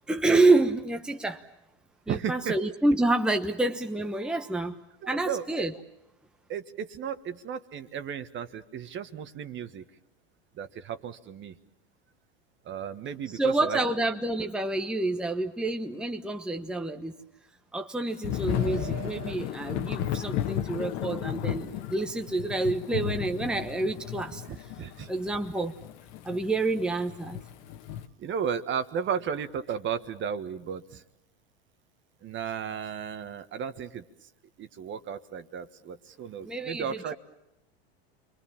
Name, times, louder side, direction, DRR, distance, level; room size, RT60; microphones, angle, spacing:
voice 1, 0.1-1.4 2.1-4.8 5.1-5.7 13.3-17.2 17.7-24.7 25.1-25.7 26.2-27.4 36.4-37.1, right 2 dB, 5° right, 5 dB, 1.1 m, -28 dB
voice 2, 2.1-2.5 5.0-5.4 6.5-9.8 10.6-11.5 12.6-13.8 18.5-19.3 24.5-25.1 28.2-31.0 32.2-34.0 34.6-37.1, right 7 dB, 35° right, 11 dB, 1.6 m, -34 dB
Thunder / Rain, 18.2-28.1, left 11 dB, 50° left, 1.7 m, -34 dB
28.5 x 23.5 x 7.3 m, 0.86 s
hypercardioid pair, 95°, 32 cm